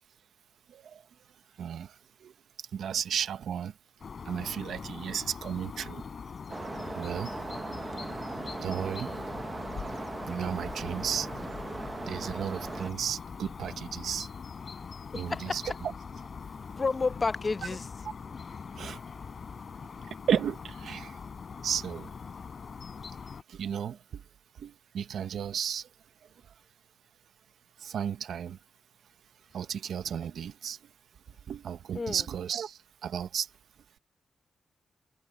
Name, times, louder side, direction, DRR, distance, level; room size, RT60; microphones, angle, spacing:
voice 1, 0.7-1.0 1.6-2.3 2.7-3.7 4.2-6.0 6.9-7.4 8.6-9.1 10.3-11.3 12.0-14.3 15.1-15.6 18.8-19.0 20.1-21.2 21.6-22.1 23.5-24.2 24.6-25.9 27.8-28.6 29.5-30.8 31.5-33.5, right 8 dB, 85° right, 1.0 m, -34 dB
sound 1, 4.0-23.4, left 5 dB, 55° left, 4.4 m, -42 dB
sound 2, 6.5-12.9, right 3 dB, 30° right, 0.9 m, -39 dB
voice 2, 15.1-15.7 16.8-17.9 31.9-32.3, left 4 dB, 35° left, 0.9 m, -31 dB
cardioid pair, 85°, 0 cm